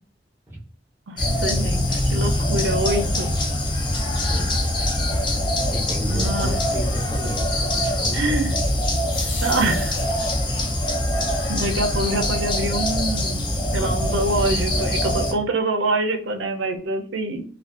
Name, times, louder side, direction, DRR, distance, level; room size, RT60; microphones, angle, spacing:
voice 1, 1.1-3.3 6.1-6.5 8.1-8.6 9.4-10.0 11.5-13.4 13.7-17.4, right 2 dB, 75° right, 5 dB, 0.5 m, -25 dB
sound 1, 1.2-15.3, left 1 dB, 25° left, 0.5 m, -23 dB
voice 2, 4.3-4.9 5.7-8.3 13.8-14.0, right 1 dB, 15° right, -3 dB, 0.7 m, -32 dB
sound 2, 8.4-10.6, left 3 dB, 70° left, 1.0 m, -38 dB
2.5 x 2.2 x 2.4 m, 0.43 s
head